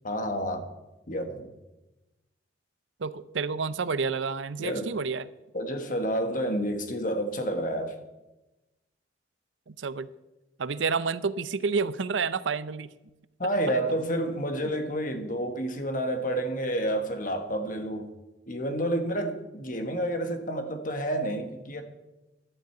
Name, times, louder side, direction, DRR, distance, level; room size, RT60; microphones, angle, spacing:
voice 1, 0.0-0.7 1.1-1.5 4.6-4.9 5.5-8.0 13.4-18.1 18.5-21.8, right 1 dB, 45° left, 7 dB, 1.4 m, -29 dB
voice 2, 3.0-5.3 9.7-10.1 10.6-12.9, right 5 dB, 85° right, 16 dB, 0.6 m, -29 dB
12.0 x 7.6 x 8.0 m, 1.0 s
head